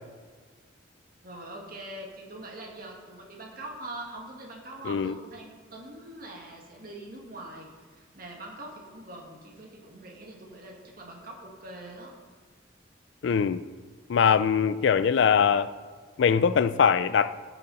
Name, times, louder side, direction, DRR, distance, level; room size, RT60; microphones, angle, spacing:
voice 1, 1.2-12.1, right 1 dB, 45° right, 0 dB, 2.0 m, -43 dB
voice 2, 13.2-13.6 14.1-15.7 16.2-17.3, left 7 dB, 65° left, 15 dB, 0.4 m, -22 dB
15.5 x 7.0 x 4.1 m, 1.5 s
head